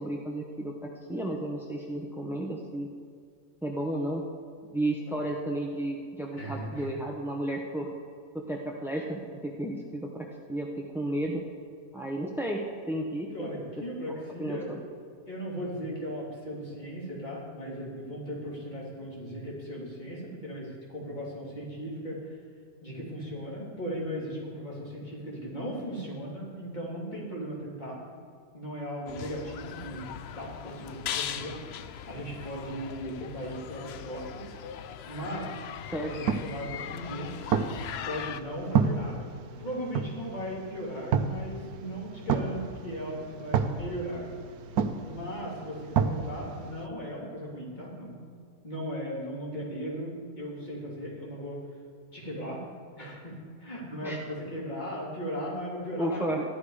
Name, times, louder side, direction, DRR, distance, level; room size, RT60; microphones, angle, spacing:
voice 1, 0.0-2.9 3.6-4.2 4.7-7.9 8.3-10.7 10.9-11.4 11.9-12.6 12.9-13.5 14.4-14.8 35.9-36.1 54.0-54.2 56.0-56.4, right 1 dB, ahead, -1 dB, 0.6 m, -33 dB
voice 2, 6.3-6.9 13.3-14.8 15.2-22.4 22.8-28.0 28.5-30.1 30.3-34.5 35.1-35.6 36.0-37.3 38.1-39.3 39.6-44.3 45.1-48.2 48.6-51.6 52.1-52.6 53.0-53.3 53.6-56.4, equal, 30° left, -5 dB, 3.2 m, -37 dB
sound 1, 29.1-38.4, left 9 dB, 80° left, 0.5 m, -40 dB
sound 2, 36.1-46.9, right 6 dB, 75° right, 1.2 m, -32 dB
14.0 x 11.5 x 4.9 m, 2.2 s
omnidirectional pair, 1.7 m